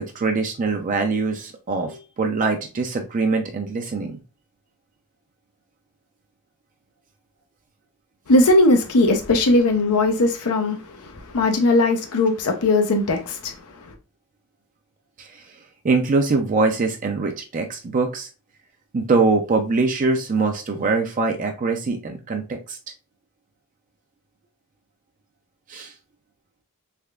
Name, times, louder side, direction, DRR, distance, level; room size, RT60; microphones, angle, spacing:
voice 1, 0.0-4.2 15.2-15.5 15.8-18.3 18.9-22.8 25.7-25.9, right 3 dB, 35° right, 0.4 m, -23 dB
voice 2, 8.3-13.9, left 2 dB, 90° left, 0.6 m, -19 dB
3.5 x 3.2 x 2.3 m
head